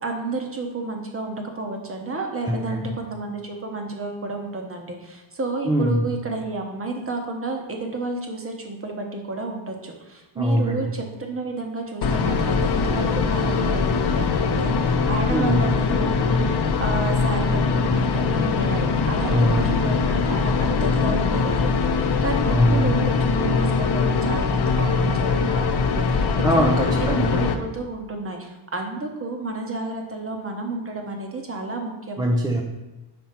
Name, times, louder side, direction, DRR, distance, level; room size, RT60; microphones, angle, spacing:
voice 1, 0.0-26.3 26.5-26.8 27.3-32.2, right 3 dB, 25° right, 3 dB, 0.9 m, -31 dB
voice 2, 2.5-2.8 5.6-6.1 10.4-10.8 15.3-15.7 19.3-19.9 22.5-22.8 26.4-27.3 32.2-32.6, equal, 10° right, 1 dB, 0.3 m, -22 dB
sound 1, 12.0-27.5, left 4 dB, 55° left, 0.6 m, -22 dB
5.2 x 4.1 x 5.7 m, 1.1 s
wide cardioid pair, 170°, 49 cm